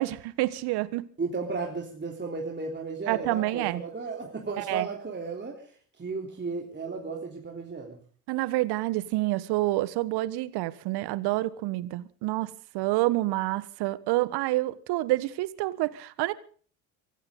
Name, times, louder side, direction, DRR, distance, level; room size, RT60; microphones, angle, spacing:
voice 1, 0.0-1.1 3.1-3.8 4.6-4.9 8.3-16.3, right 18 dB, 60° right, 1.4 m, -28 dB
voice 2, 1.2-5.7 6.0-8.0, right 4 dB, 25° right, 3.5 m, -34 dB
25.0 x 14.5 x 3.8 m
hypercardioid pair, 65°, 45 cm